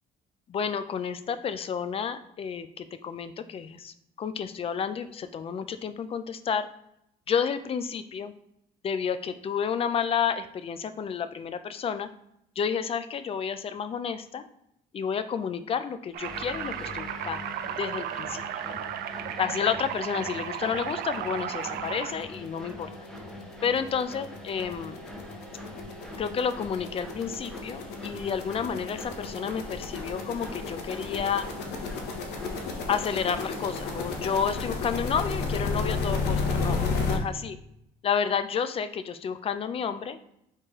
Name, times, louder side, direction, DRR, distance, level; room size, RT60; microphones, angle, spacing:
voice 1, 0.5-6.7 7.3-8.3 8.8-12.1 12.6-14.4 14.9-17.4 17.8-18.6 19.4-22.9 23.6-24.9 26.2-31.5 32.9-37.6 38.0-40.2, left 7 dB, 35° left, 11 dB, 0.4 m, -30 dB
sound 1, 16.1-22.1, right 10 dB, 70° right, 0.4 m, -35 dB
sound 2, 16.2-34.7, left 1 dB, 5° left, 0.8 m, -43 dB
sound 3, 21.7-21.8 22.2-22.3 22.6-37.2, left 4 dB, 80° left, 0.9 m, -32 dB
4.3 x 3.3 x 3.6 m, 0.78 s
cardioid pair, 110°, 17 cm